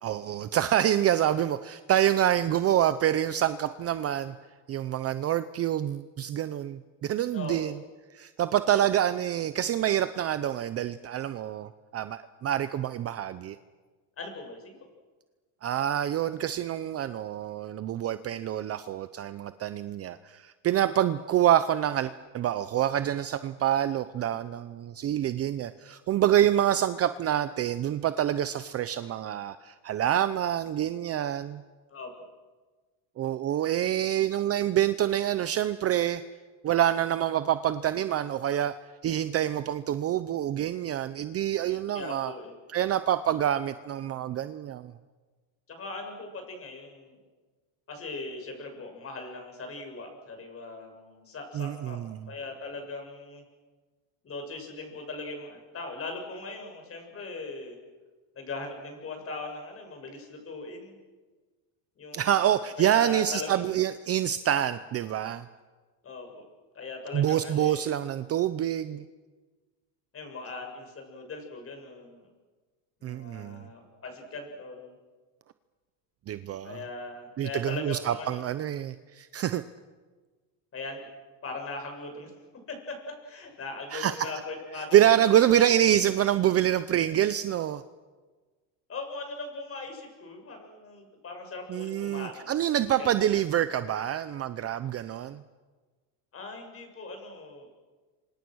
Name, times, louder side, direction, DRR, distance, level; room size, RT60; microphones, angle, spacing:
voice 1, 0.0-4.3 4.7-7.8 8.1-13.6 15.6-31.6 33.2-36.2 36.6-38.8 39.0-42.3 42.7-44.9 51.5-52.3 62.1-65.4 67.1-69.0 73.0-73.6 76.3-76.8 77.4-79.6 83.9-84.3 84.9-87.8 91.7-95.4, right 11 dB, 30° right, 12 dB, 0.7 m, -26 dB
voice 2, 7.3-7.7 14.2-14.8 21.0-21.1 31.9-32.1 33.8-33.9 41.9-42.5 45.7-47.2 47.9-52.0 52.3-53.4 54.2-57.8 58.3-61.0 62.0-62.3 62.8-63.6 66.0-66.4 66.7-67.9 70.1-72.3 73.0-74.9 76.6-78.4 80.7-81.1 81.4-82.3 82.7-82.9 83.2-85.0 85.2-85.6 88.9-92.5 93.0-93.1 96.3-97.7, left 3 dB, 30° left, 4 dB, 7.0 m, -39 dB
27.5 x 25.5 x 6.4 m, 1.3 s
cardioid pair, 140°, 48 cm